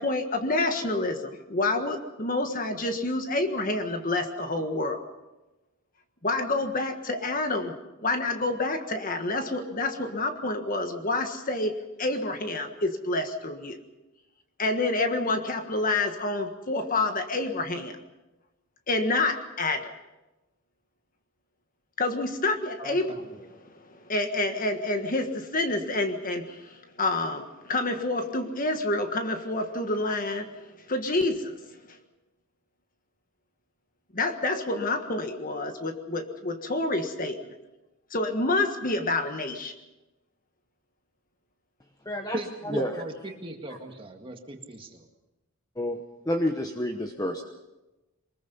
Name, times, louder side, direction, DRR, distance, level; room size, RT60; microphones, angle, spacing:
voice 1, 0.0-5.0 6.2-7.7 8.0-11.7 12.0-13.8 14.6-17.9 18.9-19.9 22.0-30.5 30.9-31.6 31.9-32.0 34.1-37.6 38.1-39.7, left 2 dB, 40° left, 6 dB, 1.6 m, -28 dB
voice 2, 22.8-23.2 42.3-45.1, right 1 dB, 25° right, 3 dB, 2.0 m, -38 dB
voice 3, 42.1-42.4 42.6-43.0 45.8-46.0 46.2-47.4, left 1 dB, 15° left, 4 dB, 1.0 m, -28 dB
24.0 x 21.0 x 5.5 m, 1.1 s
head